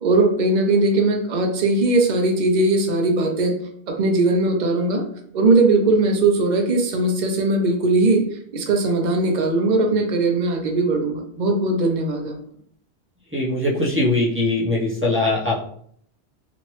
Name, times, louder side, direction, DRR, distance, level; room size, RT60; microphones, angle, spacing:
voice 1, 0.0-3.6 3.9-5.0 5.3-8.2 8.5-12.3, right 2 dB, 50° right, 3 dB, 0.6 m, -19 dB
voice 2, 13.3-15.6, left 2 dB, 15° right, -7 dB, 0.6 m, -21 dB
2.9 x 2.5 x 3.0 m, 0.65 s
omnidirectional pair, 1.1 m